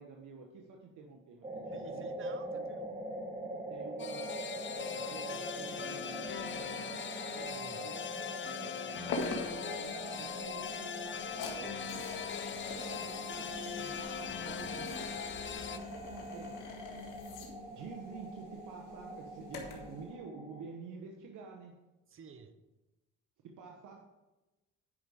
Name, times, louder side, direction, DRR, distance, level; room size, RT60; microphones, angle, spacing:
voice 1, 0.0-2.1 2.5-2.6 3.7-6.9 7.7-12.1 12.7-15.2 15.7-16.6 17.7-21.7 23.4-24.1, right 5 dB, 80° right, 1 dB, 1.1 m, -50 dB
sound 1, 1.4-20.6, right 1 dB, 20° right, 1.9 m, -44 dB
voice 2, 1.7-2.9 7.3-7.9 22.1-22.5, right 6 dB, 45° right, 9 dB, 0.9 m, -52 dB
sound 2, 4.0-15.8, left 8 dB, 40° left, 0.7 m, -41 dB
sound 3, 9.1-20.0, left 3 dB, 85° left, 1.9 m, -44 dB
10.0 x 5.4 x 4.8 m, 1.1 s
cardioid pair, 90°, 30 cm